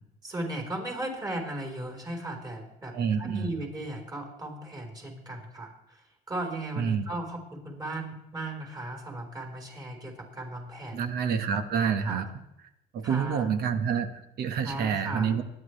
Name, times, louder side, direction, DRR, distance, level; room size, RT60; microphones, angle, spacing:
voice 1, 0.2-11.0 12.0-12.2 13.0-13.5 14.6-15.3, right 1 dB, 25° right, 1 dB, 4.5 m, -37 dB
voice 2, 2.9-3.5 6.8-7.0 10.9-12.3 12.9-15.4, right 7 dB, 65° right, 8 dB, 1.4 m, -28 dB
25.5 x 10.5 x 3.3 m, 0.85 s
cardioid pair, 110°, 17 cm